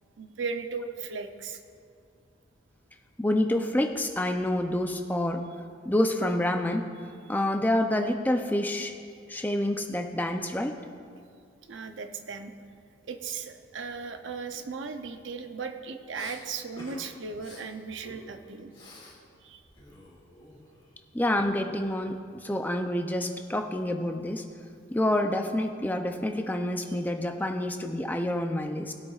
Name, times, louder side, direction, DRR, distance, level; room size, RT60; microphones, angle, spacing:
voice 1, 0.2-1.6 11.7-12.5 13.1-18.7 19.4-19.6, right 5 dB, 70° right, 6 dB, 0.6 m, -37 dB
voice 2, 3.2-5.4 5.9-6.9 7.3-8.9 9.3-10.8 21.1-24.4 24.9-28.9, left 1 dB, 10° left, 4 dB, 0.4 m, -28 dB
Respiratory sounds, 16.1-16.4 16.8-17.0 17.3-17.6 18.0-19.2 19.4-20.9, left 1 dB, 30° left, 2.2 m, -48 dB
19.5 x 8.6 x 2.4 m, 2.3 s
head